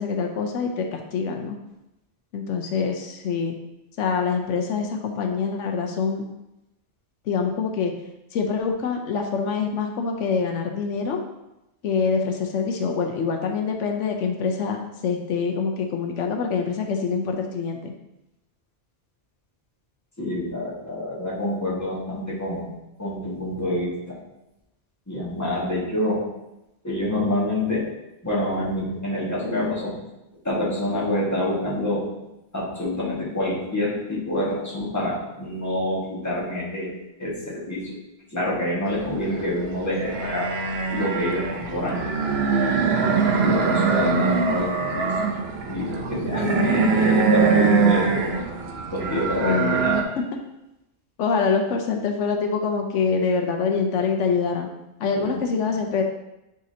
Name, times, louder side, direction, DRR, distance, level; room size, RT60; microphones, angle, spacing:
voice 1, 0.0-1.6 2.3-3.6 4.0-6.2 7.3-7.9 8.3-11.2 11.8-17.9 46.4-46.9 49.4-49.8 51.2-54.7 55.0-56.0, left 5 dB, 85° left, 3 dB, 1.0 m, -25 dB
voice 2, 20.2-24.2 25.1-26.2 26.8-27.9 28.2-30.0 30.4-32.1 32.5-36.9 37.2-37.9 38.3-40.5 40.9-42.1 43.4-45.1 45.7-48.3 48.9-50.1 55.2-55.3, left 1 dB, 15° left, -6 dB, 1.6 m, -27 dB
sound 1, 38.9-50.0, right 5 dB, 65° right, 0.9 m, -23 dB
9.5 x 3.8 x 2.8 m, 0.93 s
omnidirectional pair, 1.2 m